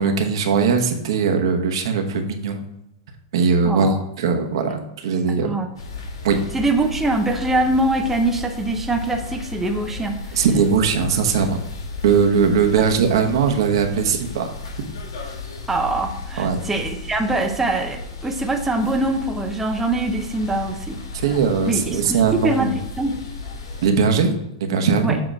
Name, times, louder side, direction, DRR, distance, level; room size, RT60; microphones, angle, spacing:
voice 1, 0.0-2.6 3.3-5.5 6.2-6.4 10.3-11.6 12.0-14.5 16.4-16.6 21.1-22.7 23.8-25.2, right 5 dB, 75° right, 5 dB, 1.1 m, -20 dB
voice 2, 3.6-4.0 5.3-5.7 6.5-10.4 15.7-21.0 21.7-23.2 25.0-25.2, right 2 dB, 10° right, 4 dB, 0.6 m, -23 dB
sound 1, 5.8-23.9, left 3 dB, 85° left, 1.6 m, -34 dB
7.6 x 3.0 x 6.2 m, 0.87 s
supercardioid pair, 145°, 3 cm